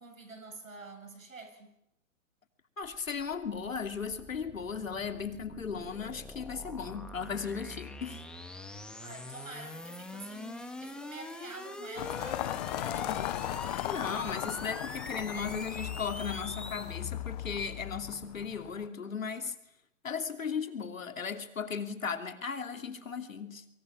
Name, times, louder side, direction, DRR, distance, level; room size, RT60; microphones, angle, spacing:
voice 1, 0.0-1.7 9.0-13.4, right 3 dB, 80° right, 7.6 m, -48 dB
voice 2, 2.8-8.3 12.9-13.4 13.9-19.5 20.0-23.7, left 6 dB, 80° left, 2.9 m, -36 dB
sound 1, 2.8-17.0, left 2 dB, ahead, 1.9 m, -44 dB
sound 2, 12.0-18.9, left 15 dB, 30° left, 0.9 m, -37 dB
30.0 x 24.0 x 6.2 m
hypercardioid pair, 130°, 40 cm